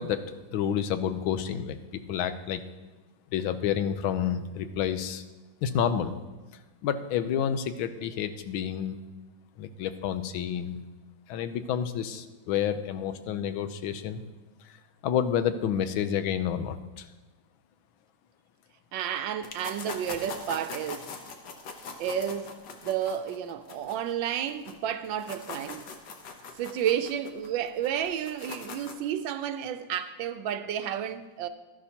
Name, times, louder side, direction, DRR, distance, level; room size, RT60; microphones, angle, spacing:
voice 1, 0.0-2.6 3.3-5.2 5.6-6.2 6.8-9.0 9.6-10.8 11.3-14.2 14.7-14.8 15.0-17.1, left 9 dB, 90° left, 1.5 m, -29 dB
voice 2, 18.9-21.1 22.0-22.5 22.8-25.8 26.6-31.5, right 9 dB, 75° right, 1.3 m, -31 dB
sound 1, 19.4-24.7 25.0-29.1, left 4 dB, 65° left, 1.5 m, -42 dB
12.5 x 11.5 x 2.8 m
omnidirectional pair, 2.2 m